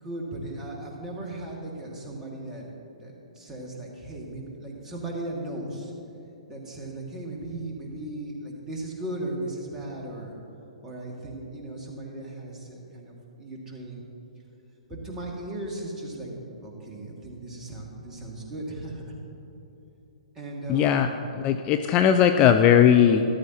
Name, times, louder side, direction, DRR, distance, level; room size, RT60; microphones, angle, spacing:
voice 1, 0.0-5.9 6.5-10.4 10.8-14.0 14.9-16.3 16.6-19.1 20.3-21.3, right 1 dB, 15° right, -3 dB, 2.0 m, -37 dB
voice 2, 20.7-21.1 21.4-23.3, left 9 dB, 25° left, 7 dB, 0.4 m, -18 dB
13.5 x 12.5 x 2.9 m, 2.9 s
figure-of-eight pair, 120°, 4 cm